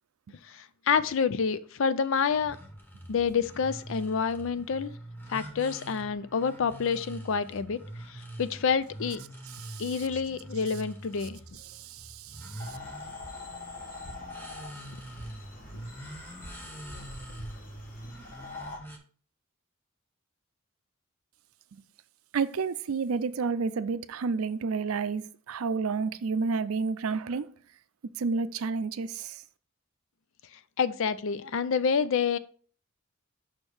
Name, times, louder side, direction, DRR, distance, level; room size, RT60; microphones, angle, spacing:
voice 1, 0.5-2.6 3.1-4.9 5.3-7.8 8.1-9.2 9.8-11.4 30.8-32.4, left 6 dB, 65° left, 0.5 m, -28 dB
sound 1, 2.3-19.0, right 1 dB, 10° left, 1.1 m, -44 dB
voice 2, 11.7-12.0 12.3-12.5 22.3-27.5 28.2-29.3, right 4 dB, 80° right, 0.5 m, -30 dB
sound 2, 12.6-18.8, left 2 dB, 40° left, 1.2 m, -44 dB
5.9 x 4.4 x 4.8 m
head